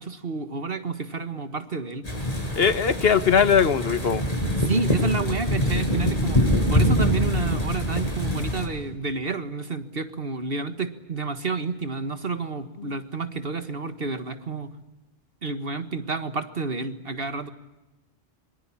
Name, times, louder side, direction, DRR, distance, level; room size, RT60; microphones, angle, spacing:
voice 1, 0.0-2.1 4.6-14.7 15.4-17.5, right 4 dB, 65° right, 9 dB, 1.9 m, -30 dB
sound 1, 2.0-8.6, equal, 35° left, 6.4 m, -24 dB
voice 2, 2.6-4.2, left 7 dB, 70° left, 12 dB, 1.5 m, -20 dB
25.5 x 24.5 x 8.6 m, 1.0 s
omnidirectional pair, 1.0 m